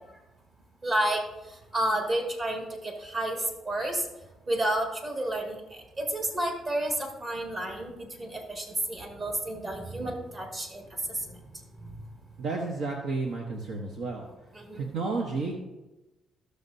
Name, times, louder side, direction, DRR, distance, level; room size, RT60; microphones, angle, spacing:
voice 1, 0.8-1.2 1.7-4.0 4.5-5.6 6.0-11.2 14.5-14.9, right 1 dB, 45° right, 1 dB, 2.3 m, -30 dB
voice 2, 12.4-14.3 14.7-15.6, right 3 dB, 80° right, 0 dB, 1.1 m, -31 dB
15.0 x 6.6 x 2.7 m, 1.0 s
cardioid pair, 90°, 0 cm